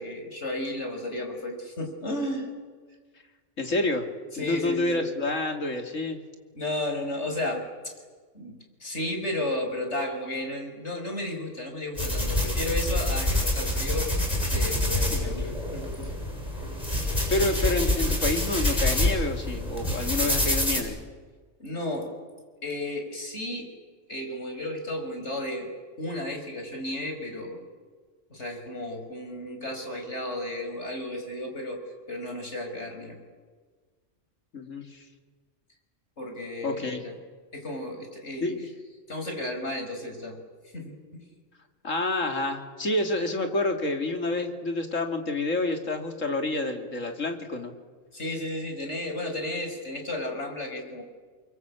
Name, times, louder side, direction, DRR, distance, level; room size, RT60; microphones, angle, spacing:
voice 1, 0.0-2.5 4.3-5.0 6.5-7.9 8.3-14.1 14.5-16.1 21.6-22.1 22.6-23.7 24.1-25.7 26.0-27.6 28.3-31.8 32.1-33.2 36.2-37.1 37.5-38.5 39.1-40.4 40.7-41.2 48.1-51.0, left 1 dB, 60° left, 4 dB, 5.5 m, -33 dB
voice 2, 3.6-4.1 4.4-6.2 15.1-15.3 17.3-21.0 34.5-35.0 36.6-37.0 38.4-38.7 41.8-47.7, left 2 dB, 75° left, 4 dB, 3.2 m, -28 dB
sound 1, 12.0-20.8, left 1 dB, 30° left, 7.2 m, -26 dB
29.0 x 24.0 x 8.5 m, 1.4 s
omnidirectional pair, 1.3 m